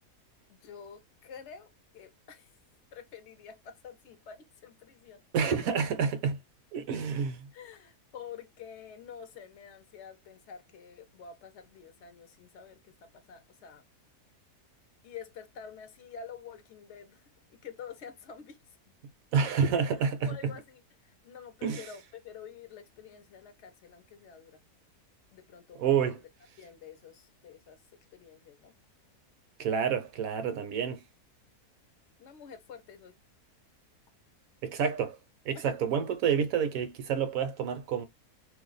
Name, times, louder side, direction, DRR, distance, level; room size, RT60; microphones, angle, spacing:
voice 1, 0.5-2.5 2.9-5.2 7.5-13.8 15.0-18.6 20.2-24.5 25.3-26.2 26.6-27.8 28.1-28.7 32.2-33.1 35.5-35.7, left 7 dB, 60° left, 0.8 m, -48 dB
voice 2, 5.3-6.4 6.7-7.5 19.3-20.3 21.6-21.8 25.8-26.2 29.6-31.0 34.6-35.2 35.4-38.1, right 7 dB, 70° right, 1.0 m, -28 dB
2.7 x 2.2 x 3.8 m
omnidirectional pair, 1.7 m